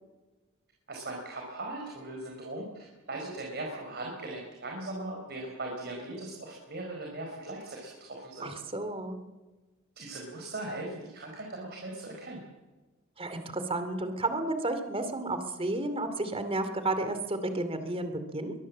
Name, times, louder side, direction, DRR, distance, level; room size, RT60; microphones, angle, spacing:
voice 1, 0.9-8.5 10.0-12.4, right 2 dB, 55° right, 0 dB, 4.7 m, -39 dB
voice 2, 8.4-9.2 13.2-18.5, right 2 dB, 30° right, 9 dB, 2.6 m, -32 dB
23.5 x 20.5 x 7.5 m, 1.2 s
head